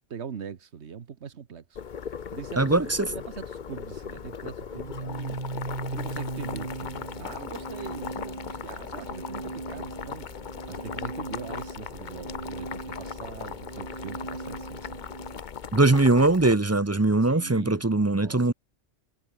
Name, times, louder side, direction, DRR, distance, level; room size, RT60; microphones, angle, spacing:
voice 1, 0.1-1.8 2.3-5.4 5.9-10.3 10.7-15.0 17.3-18.5, right 7 dB, 75° right, 1.5 m, -42 dB
Boiling, 1.7-16.5, left 7 dB, 45° left, 0.9 m, -38 dB
voice 2, 2.6-3.1 15.7-18.5, right 2 dB, 15° right, 0.7 m, -21 dB
Organ, 4.7-15.5, right 3 dB, 45° right, 2.3 m, -39 dB
omnidirectional pair, 1.2 m